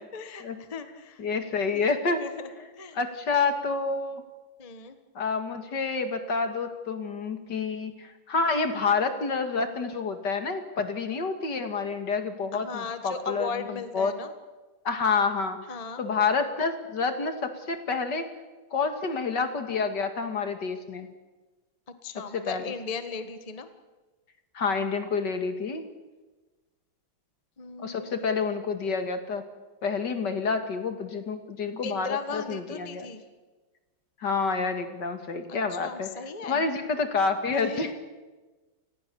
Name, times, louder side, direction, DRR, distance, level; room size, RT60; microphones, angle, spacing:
voice 1, 0.0-1.2 1.7-3.0 4.6-5.0 12.5-14.3 15.7-16.0 22.0-23.7 27.6-28.2 31.8-33.2 35.5-36.6 37.5-37.9, left 5 dB, 20° left, 8 dB, 1.3 m, -37 dB
voice 2, 1.2-2.2 3.0-4.2 5.2-13.5 13.9-14.1 14.8-15.6 16.0-18.3 18.7-21.1 22.3-22.6 24.5-25.8 27.8-29.4 29.8-33.1 34.2-36.1 36.4-37.9, left 4 dB, 60° left, 7 dB, 2.6 m, -28 dB
29.5 x 20.0 x 7.0 m, 1.2 s
omnidirectional pair, 2.2 m